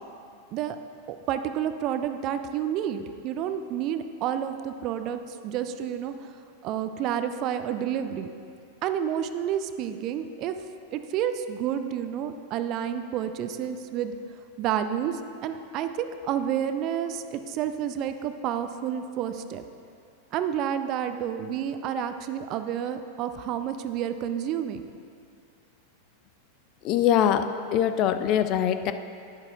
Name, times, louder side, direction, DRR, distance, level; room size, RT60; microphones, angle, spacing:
voice 1, 1.1-6.1 6.6-8.3 8.8-10.5 10.9-14.1 14.6-19.6 20.3-24.8, right 9 dB, 40° right, 9 dB, 0.4 m, -30 dB
voice 2, 26.8-27.4 27.7-28.9, left 10 dB, 40° left, 9 dB, 0.4 m, -22 dB
11.0 x 9.8 x 2.6 m, 2.5 s
figure-of-eight pair, 90°, 0 cm